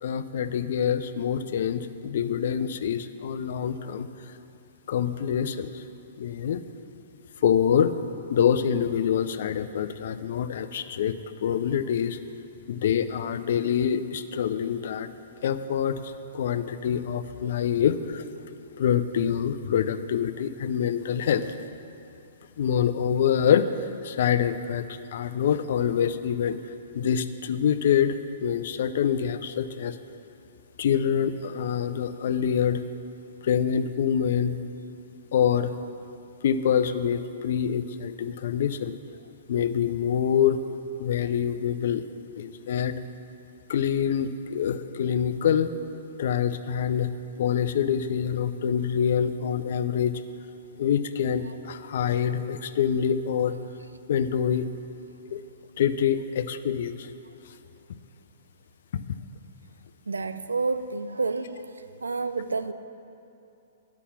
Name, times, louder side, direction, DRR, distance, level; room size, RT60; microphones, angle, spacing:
voice 1, 0.0-4.1 4.9-5.8 6.2-6.6 7.4-7.9 8.3-12.2 12.7-15.1 15.4-18.2 18.8-21.6 22.6-23.7 24.0-26.6 26.9-30.0 30.8-32.8 33.4-34.6 35.3-35.7 36.4-39.0 39.5-40.6 41.0-42.0 42.4-42.9 43.7-45.7 46.2-47.1 47.4-50.2 50.8-53.6 54.1-54.7 55.3-55.4 55.8-57.1 58.9-59.2, left 8 dB, 60° left, 11 dB, 0.5 m, -25 dB
voice 2, 60.1-61.7 62.0-62.7, right 4 dB, 85° right, 11 dB, 0.5 m, -29 dB
9.8 x 5.8 x 7.1 m, 2.7 s
hypercardioid pair, 120°, 0 cm